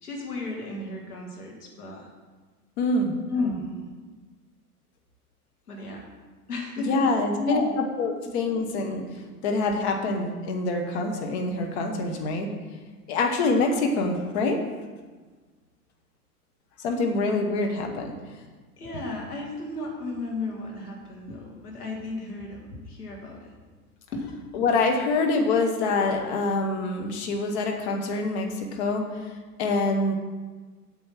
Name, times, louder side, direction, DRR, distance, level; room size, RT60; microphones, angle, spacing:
voice 1, 0.0-2.1 3.3-3.9 5.7-6.1 6.5-7.0 7.4-8.1 9.2-9.3 18.8-23.5 24.1-24.2, left 2 dB, 75° left, -1 dB, 2.7 m, -33 dB
voice 2, 2.8-3.1 6.8-9.0 9.4-12.5 13.1-14.6 16.8-18.1 24.5-29.3 29.6-30.1, left 3 dB, 45° left, 3 dB, 1.5 m, -25 dB
8.8 x 6.8 x 6.0 m, 1.3 s
figure-of-eight pair, 95°, 46 cm